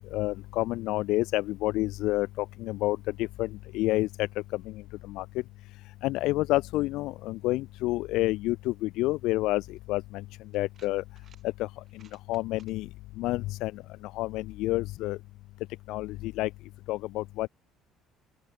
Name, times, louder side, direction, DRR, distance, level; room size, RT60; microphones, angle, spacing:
voice 1, 0.0-5.3 6.0-10.2 10.5-11.0 11.6-11.7 12.3-12.9 13.2-15.2 15.9-16.5 16.9-17.5, left 18 dB, 80° left, 0.4 m, -29 dB
sound 1, 9.7-9.8 10.5-11.4 11.8-12.7, right 8 dB, 35° right, 2.4 m, -60 dB
open air
cardioid pair, 155°, 0 cm